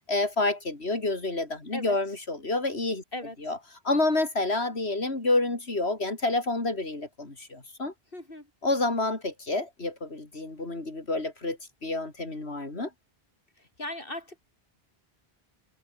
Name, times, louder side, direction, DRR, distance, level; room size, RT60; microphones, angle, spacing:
voice 1, 0.0-3.0 3.4-3.6 3.8-7.9 8.6-12.9, left 2 dB, 90° left, 4.2 m, -28 dB
voice 2, 3.1-3.5 8.1-8.5 13.6-14.4, left 1 dB, 60° left, 6.1 m, -38 dB
omnidirectional pair, 1.0 m